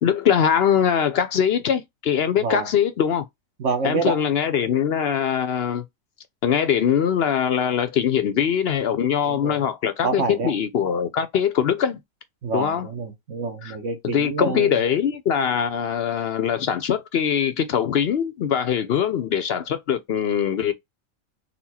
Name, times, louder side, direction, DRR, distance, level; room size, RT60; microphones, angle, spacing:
voice 1, 0.0-3.2 3.8-5.8 6.4-12.0 12.5-12.9 13.6-13.8 14.1-20.7, left 8 dB, 60° left, 0.7 m, -22 dB
voice 2, 3.6-4.2 9.3-9.6 10.0-10.5 12.4-14.7, right 4 dB, 60° right, 1.2 m, -27 dB
4.2 x 2.3 x 4.1 m
omnidirectional pair, 1.5 m